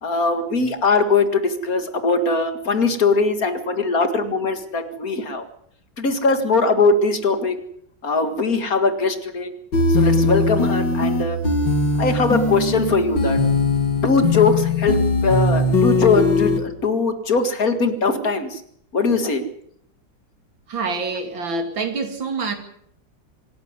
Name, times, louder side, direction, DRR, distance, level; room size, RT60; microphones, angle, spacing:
voice 1, 0.0-5.4 6.0-7.6 8.0-9.5 9.9-11.4 12.0-13.4 14.0-18.6 18.9-19.4, left 3 dB, 50° left, 2.3 m, -20 dB
sound 1, 9.7-16.6, left 3 dB, 65° left, 2.6 m, -20 dB
voice 2, 20.7-22.5, right 4 dB, 75° right, 3.3 m, -26 dB
26.0 x 11.0 x 9.6 m
omnidirectional pair, 2.1 m